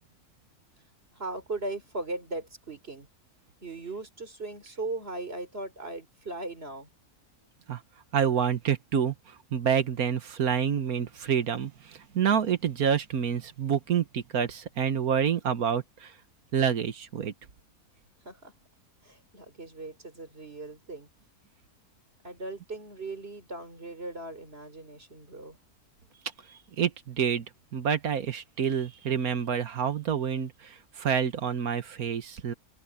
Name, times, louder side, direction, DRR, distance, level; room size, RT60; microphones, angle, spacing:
voice 1, 1.2-3.1 3.6-6.9 18.2-18.5 19.0-21.1 22.2-25.6, right 2 dB, 40° right, 3.9 m, -38 dB
voice 2, 8.1-16.1 16.5-17.3 26.8-27.5 27.7-32.5, right 8 dB, 70° right, 1.7 m, -28 dB
open air
omnidirectional pair, 1.6 m